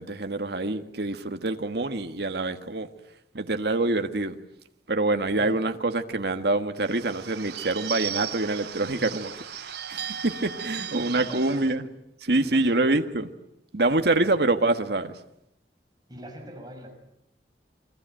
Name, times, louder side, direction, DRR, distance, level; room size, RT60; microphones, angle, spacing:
voice 1, 0.0-2.9 3.3-4.4 4.9-11.8 12.2-13.3 13.7-15.2, right 2 dB, 60° right, 1.5 m, -26 dB
Bird / Bell, 6.8-11.7, right 8 dB, 80° right, 3.1 m, -36 dB
voice 2, 10.7-11.7 12.3-12.8 14.2-14.4 16.1-16.9, equal, 25° right, 5.7 m, -43 dB
29.5 x 22.0 x 9.1 m
head